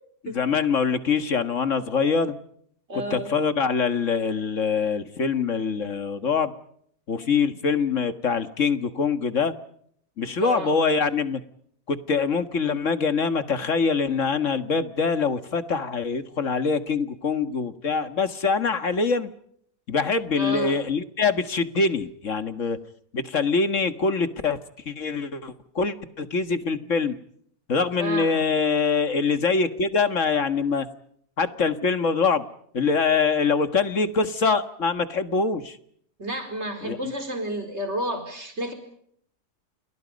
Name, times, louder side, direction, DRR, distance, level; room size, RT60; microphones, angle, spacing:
voice 1, 0.2-2.3 3.1-6.5 7.1-9.5 10.2-11.4 11.9-19.3 19.9-22.8 23.1-24.6 24.9-27.2 27.7-30.9 31.4-32.4 32.7-35.8 36.8-37.1, left 5 dB, 50° left, 10 dB, 1.9 m, -24 dB
voice 2, 2.9-3.3 10.4-10.7 20.3-20.8 28.0-28.4 36.2-38.7, equal, 40° right, 7 dB, 4.8 m, -31 dB
29.5 x 28.5 x 5.3 m, 0.67 s
omnidirectional pair, 1.7 m